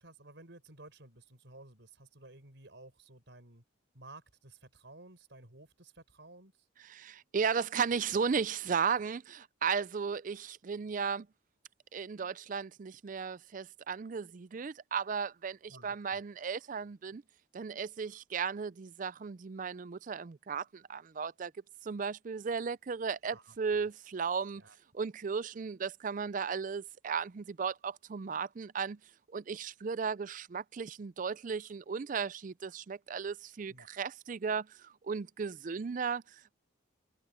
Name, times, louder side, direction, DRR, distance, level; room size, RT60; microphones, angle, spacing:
voice 1, 0.0-3.6 3.9-6.7 15.7-16.2 23.3-23.8 24.6-24.8 33.7-33.9, right 2 dB, 65° right, 5.1 m, -54 dB
voice 2, 6.8-11.3 11.9-17.2 17.5-21.5 21.8-24.6 24.9-29.0 29.3-36.5, right 6 dB, 40° right, 0.4 m, -35 dB
head